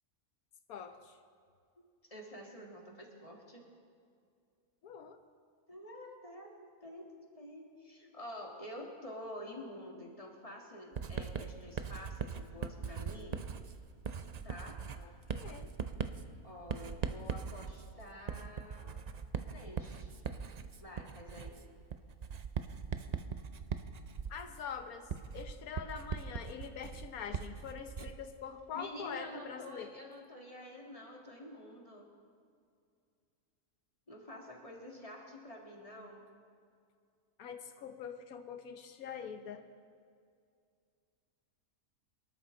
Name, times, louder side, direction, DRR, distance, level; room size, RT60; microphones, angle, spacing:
voice 1, 0.7-1.2 4.8-5.2 15.0-15.7 24.3-29.9 37.4-39.6, left 7 dB, 90° left, 7 dB, 1.4 m, -44 dB
voice 2, 2.1-3.7 5.7-7.1 7.3-13.4 14.4-14.8 16.4-19.0 19.5-20.1 20.8-21.6 28.7-32.1 34.1-36.2, left 1 dB, 25° left, 0 dB, 2.0 m, -48 dB
Writing, 11.0-28.3, right 6 dB, 75° right, 0.3 m, -41 dB
23.0 x 12.5 x 3.8 m, 2.3 s
omnidirectional pair, 1.5 m